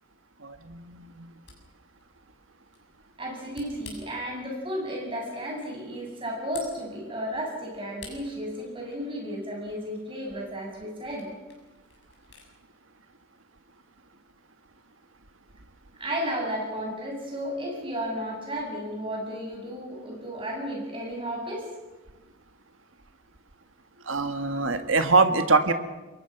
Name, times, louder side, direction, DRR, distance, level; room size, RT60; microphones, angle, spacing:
voice 1, 0.4-1.3 24.1-25.7, right 3 dB, 85° right, 8 dB, 1.8 m, -23 dB
Camera, 1.4-12.5, left 5 dB, 60° left, 6.7 m, -52 dB
voice 2, 3.2-11.3 16.0-21.7, equal, 25° right, 0 dB, 7.3 m, -33 dB
28.0 x 23.0 x 6.1 m, 1.1 s
head